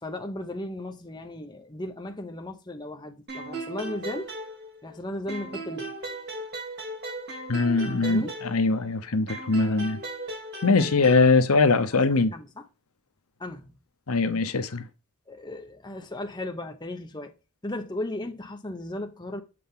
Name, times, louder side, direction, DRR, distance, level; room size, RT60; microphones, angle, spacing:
voice 1, 0.0-4.4 4.8-5.9 8.0-8.3 12.1-12.7 13.4-13.7 15.3-17.3 17.6-19.4, left 1 dB, 20° left, 0.9 m, -36 dB
sound 1, 3.3-5.0 5.3-8.9 9.3-11.3, right 2 dB, 45° right, 2.7 m, -37 dB
voice 2, 7.5-10.0 10.6-12.3 14.1-14.8, left 3 dB, 75° left, 0.9 m, -22 dB
7.8 x 4.1 x 3.7 m
head